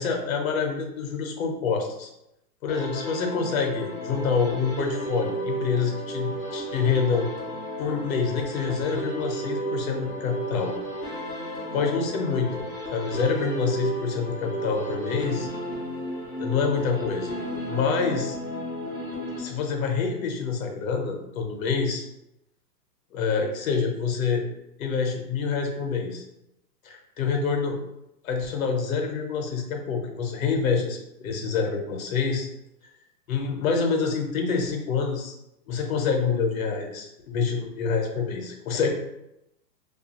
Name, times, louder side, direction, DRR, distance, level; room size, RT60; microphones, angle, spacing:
voice 1, 0.0-2.1 2.6-7.3 7.8-10.7 11.7-12.6 12.9-15.5 16.4-17.3 17.7-18.4 19.4-22.1 23.1-24.5 24.8-26.2 26.8-27.8 28.2-32.5 33.3-35.3 35.7-38.9, left 5 dB, 55° left, 3 dB, 0.7 m, -26 dB
sound 1, 2.7-19.9, right 1 dB, 20° left, 0.5 m, -33 dB
2.6 x 2.4 x 2.8 m, 0.86 s
hypercardioid pair, 150°, 50 cm